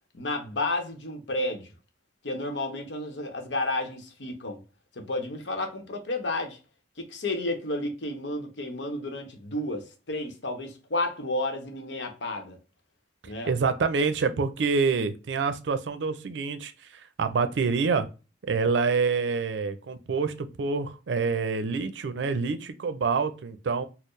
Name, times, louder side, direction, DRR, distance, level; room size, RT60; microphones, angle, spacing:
voice 1, 0.1-1.7 2.2-4.6 4.9-6.6 7.0-12.6 13.3-13.5, left 2 dB, 90° left, 0.8 m, -31 dB
voice 2, 13.2-18.1 18.4-23.8, right 4 dB, 90° right, 0.4 m, -27 dB
4.4 x 2.0 x 3.1 m
head